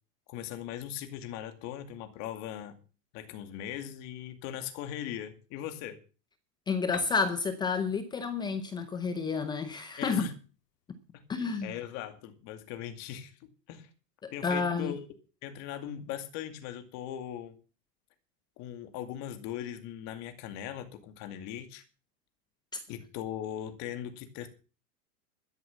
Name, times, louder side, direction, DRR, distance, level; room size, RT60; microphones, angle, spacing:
voice 1, 0.3-2.8 3.1-6.0 10.0-10.3 11.1-11.2 11.6-13.9 14.3-15.1 15.4-17.6 18.6-21.8 22.9-24.5, left 10 dB, 35° left, 2.3 m, -39 dB
voice 2, 6.7-10.3 11.3-11.8 14.2-14.9 22.7-22.8, left 5 dB, 10° left, 0.6 m, -30 dB
Piano, 6.9-10.6, left 10 dB, 70° left, 2.7 m, -50 dB
12.5 x 10.5 x 7.1 m
supercardioid pair, 155°, 49 cm